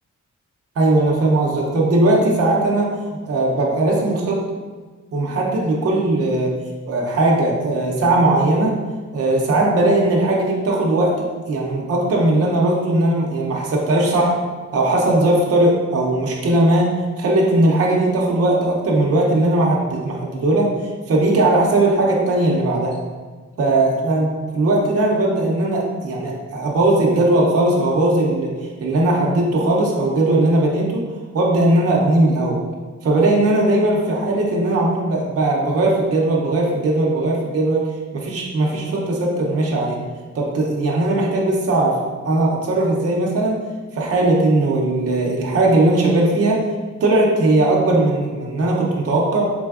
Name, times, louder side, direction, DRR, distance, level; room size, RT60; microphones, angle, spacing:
voice 1, 0.8-2.9 3.3-4.4 5.1-6.5 6.9-8.8 9.1-14.3 14.7-20.7 21.1-23.0 23.6-24.3 24.5-28.5 28.8-31.0 31.3-32.6 33.0-37.9 38.1-40.0 40.3-42.0 42.2-43.6 43.9-46.6 47.0-49.5, right 2 dB, 50° right, -3 dB, 0.6 m, -18 dB
3.7 x 3.3 x 2.4 m, 1.4 s
wide cardioid pair, 170°, 31 cm